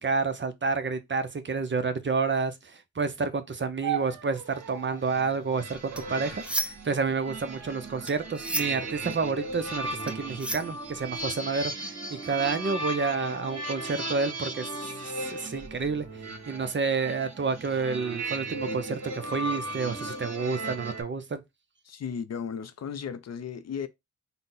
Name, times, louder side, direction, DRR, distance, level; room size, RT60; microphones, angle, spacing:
voice 1, 0.0-14.8 15.0-21.4, right 4 dB, 35° right, 0.7 m, -30 dB
sound 1, 3.8-5.1 5.9-7.1 7.9-8.4 8.7-9.3 10.0-11.3 12.0-12.5, right 10 dB, 80° right, 0.6 m, -40 dB
sound 2, 4.5-21.0, right 2 dB, 55° right, 1.7 m, -37 dB
sound 3, 5.7-7.0 7.3-11.3, right 1 dB, 5° right, 0.3 m, -35 dB
voice 2, 21.8-23.9, left 7 dB, 55° left, 0.5 m, -35 dB
3.9 x 2.2 x 3.8 m
cardioid pair, 60°, 32 cm